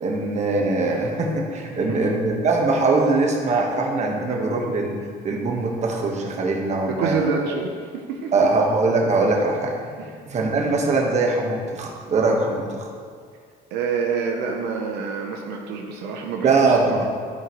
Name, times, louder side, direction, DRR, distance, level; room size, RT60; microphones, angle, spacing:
voice 1, 0.0-5.0 5.2-7.3 8.3-10.0 10.2-12.8 16.4-17.1, right 3 dB, 40° right, 0 dB, 1.3 m, -22 dB
voice 2, 6.8-8.5 10.0-10.1 13.7-17.1, right 5 dB, 90° right, 1 dB, 0.8 m, -27 dB
12.0 x 5.2 x 3.1 m, 2.1 s
cardioid pair, 110°, 17 cm